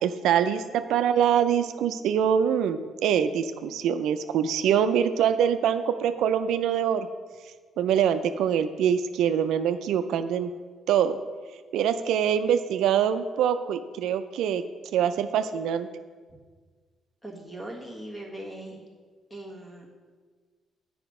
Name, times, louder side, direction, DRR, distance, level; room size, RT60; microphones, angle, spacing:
voice 1, 0.0-7.1 7.8-10.5 10.9-11.2 11.7-14.6 14.9-15.9, right 8 dB, 85° right, 10 dB, 0.3 m, -24 dB
voice 2, 17.2-18.8 19.3-19.9, right 1 dB, 15° left, -1 dB, 1.5 m, -40 dB
7.9 x 5.0 x 4.8 m, 1.5 s
cardioid pair, 90°, 0 cm